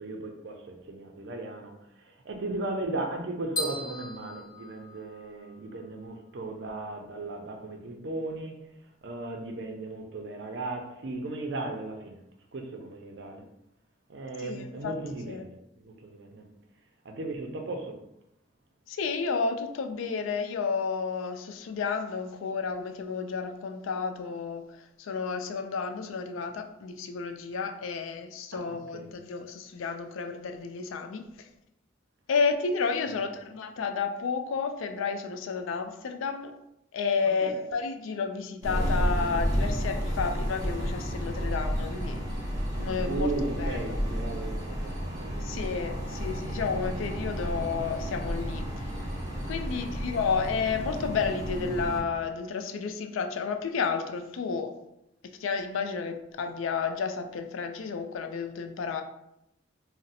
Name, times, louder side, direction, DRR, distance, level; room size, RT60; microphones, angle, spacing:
voice 1, 0.0-8.6 9.0-12.2 12.5-13.4 14.1-16.5 17.0-18.0 28.5-29.1 37.4-37.5 43.0-46.2, right 2 dB, 60° right, 0.5 m, -36 dB
sound 1, 3.6-5.5, left 2 dB, 20° left, 0.5 m, -37 dB
voice 2, 14.4-14.9 15.2-15.4 18.9-31.5 32.3-36.5 36.9-42.3 42.8-43.3 43.6-44.0 45.4-48.9 49.4-54.8 55.4-59.0, left 5 dB, 85° left, 0.4 m, -31 dB
sound 2, 38.6-52.0, equal, 20° right, 0.7 m, -31 dB
2.6 x 2.0 x 3.9 m
head